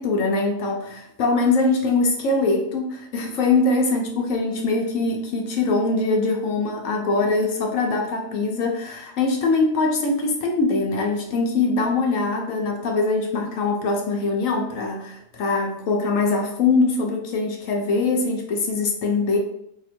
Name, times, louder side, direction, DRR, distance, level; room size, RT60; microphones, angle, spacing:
voice 1, 0.0-19.4, left 3 dB, 70° left, 2 dB, 1.0 m, -22 dB
2.9 x 2.6 x 4.2 m, 0.74 s
omnidirectional pair, 1.5 m